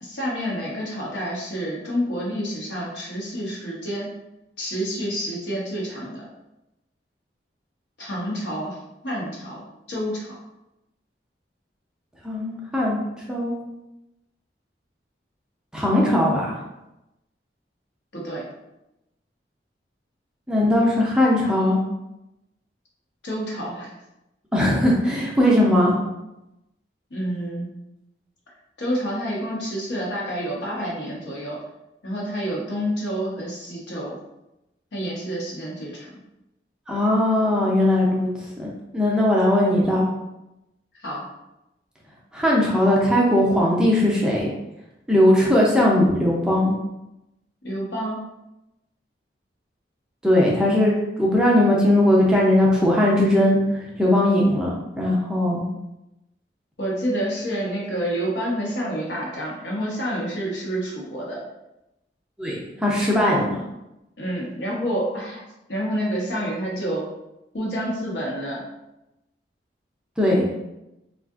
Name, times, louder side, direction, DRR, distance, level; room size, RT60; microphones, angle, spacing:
voice 1, 0.0-4.1 4.6-6.2 8.0-8.8 9.0-9.6 9.9-10.3 18.1-18.4 23.2-23.9 27.1-27.7 28.8-31.6 32.0-34.2 34.9-36.1 41.0-41.2 47.6-48.2 56.8-61.4 64.2-65.4 65.7-67.0 67.5-68.6, equal, 75° left, -4 dB, 0.9 m, -28 dB
voice 2, 12.2-13.6 15.7-16.6 20.5-21.8 24.5-26.0 36.9-38.3 38.6-38.7 38.9-40.1 42.3-44.5 45.1-46.7 50.2-50.9 51.2-55.6 62.4-63.6 70.2-70.4, left 1 dB, 5° right, -4 dB, 0.4 m, -19 dB
3.6 x 2.4 x 2.3 m, 0.91 s
head